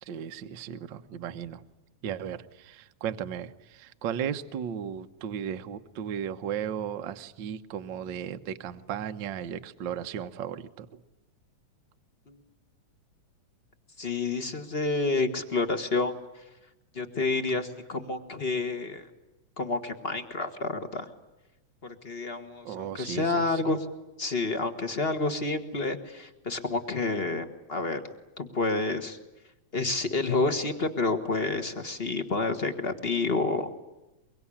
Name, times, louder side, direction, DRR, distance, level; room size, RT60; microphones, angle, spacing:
voice 1, 0.0-1.6 2.0-11.0 14.6-14.7 22.6-23.6, right 8 dB, 60° right, 8 dB, 1.3 m, -35 dB
voice 2, 14.0-16.1 16.9-19.0 19.6-21.1 21.8-23.8 24.2-28.0 28.4-29.2 29.7-33.7, left 3 dB, 30° left, 8 dB, 1.3 m, -29 dB
24.0 x 24.0 x 10.0 m, 1.0 s
omnidirectional pair, 3.4 m